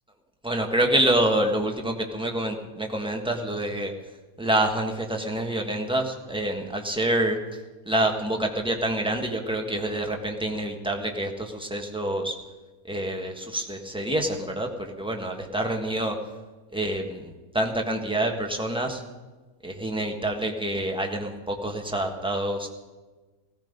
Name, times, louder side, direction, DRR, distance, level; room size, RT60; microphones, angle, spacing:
voice 1, 0.4-3.9 4.4-7.4 7.9-12.3 12.9-16.1 16.7-19.0 19.6-22.7, right 1 dB, 5° right, 2 dB, 1.4 m, -27 dB
17.5 x 13.5 x 5.3 m, 1.2 s
omnidirectional pair, 1.6 m